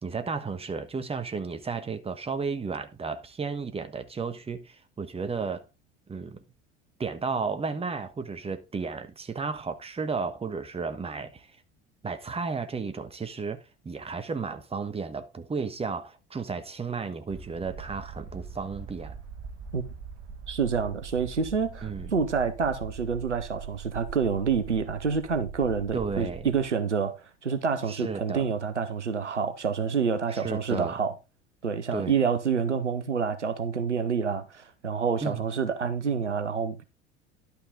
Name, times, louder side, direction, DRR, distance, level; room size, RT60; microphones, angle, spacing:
voice 1, 0.0-5.7 6.1-6.4 7.0-11.5 12.0-19.2 21.8-22.1 25.9-26.5 27.9-28.5 30.3-31.0 31.9-32.1 35.2-35.5, right 5 dB, 15° right, 1.2 m, -33 dB
sound 1, 17.3-26.6, right 5 dB, 50° right, 1.8 m, -42 dB
voice 2, 20.5-27.1 27.4-31.1 31.6-36.8, right 6 dB, 90° right, 0.9 m, -28 dB
11.5 x 5.7 x 3.8 m
figure-of-eight pair, 70°, 34 cm